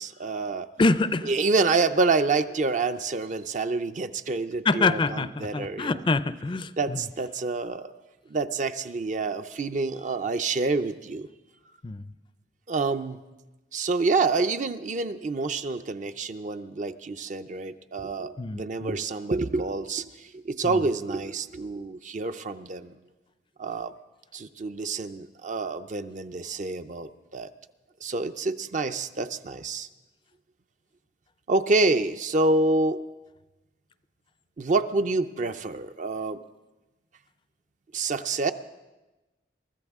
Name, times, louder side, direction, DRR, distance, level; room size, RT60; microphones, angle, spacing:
voice 1, 0.0-0.7 1.2-5.9 6.8-7.9 8.3-11.3 12.7-13.2 13.7-22.9 23.6-23.9 24.3-27.5 28.0-29.9 31.5-33.0 34.6-36.4 37.9-38.5, right 3 dB, 45° right, 10 dB, 0.5 m, -27 dB
voice 2, 0.8-1.3 4.7-7.0 11.8-12.0 18.4-19.0 20.6-20.8, left 3 dB, 25° left, 15 dB, 0.4 m, -26 dB
23.5 x 14.0 x 3.6 m, 1.1 s
head